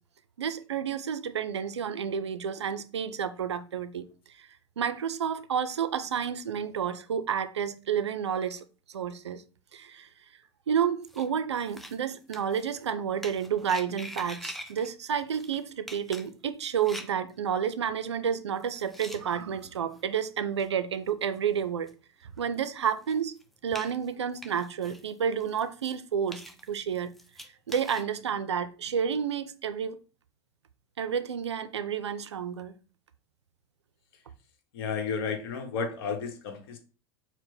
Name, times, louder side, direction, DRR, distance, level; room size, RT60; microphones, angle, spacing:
voice 1, 0.4-4.1 4.4-4.5 4.8-9.4 9.7-10.1 10.7-21.9 22.4-23.3 23.6-26.4 26.7-27.1 27.7-30.0 31.0-32.7, right 7 dB, 80° right, 0.4 m, -30 dB
sound 1, 11.0-11.3 11.6-12.0 12.3-12.8 13.2-14.9 15.2-15.6 15.9-17.3 17.9-18.0 18.6-19.5 19.9-20.0 20.6-20.7 21.4-21.5 21.9-22.0 22.4-22.5 22.8-25.1 25.4-26.0 26.3-28.0, equal, ahead, 0.6 m, -44 dB
voice 2, 34.7-36.8, left 5 dB, 60° left, 1.0 m, -32 dB
4.5 x 2.1 x 4.2 m
figure-of-eight pair, 85°, 14 cm